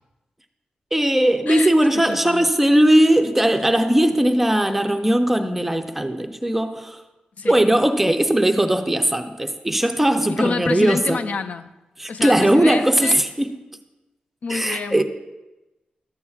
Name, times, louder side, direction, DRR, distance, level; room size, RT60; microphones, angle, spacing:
voice 1, 0.9-7.0 7.4-11.2 12.0-13.5 14.5-15.0, right 1 dB, 5° right, 0.5 m, -18 dB
voice 2, 1.5-2.5 7.4-7.6 10.3-11.7 12.1-13.2 14.4-15.0, left 4 dB, 55° left, 0.3 m, -28 dB
13.5 x 8.3 x 2.4 m
wide cardioid pair, 160°, 3 cm